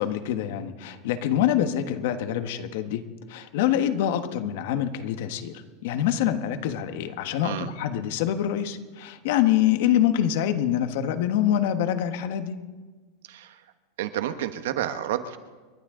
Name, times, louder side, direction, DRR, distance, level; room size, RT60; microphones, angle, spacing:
voice 1, 0.0-3.0 3.3-12.6, left 11 dB, 65° left, 8 dB, 1.4 m, -25 dB
voice 2, 13.3-13.6 14.0-15.4, right 11 dB, 80° right, 9 dB, 1.3 m, -30 dB
29.5 x 12.0 x 3.8 m, 1.3 s
supercardioid pair, 155°, 0 cm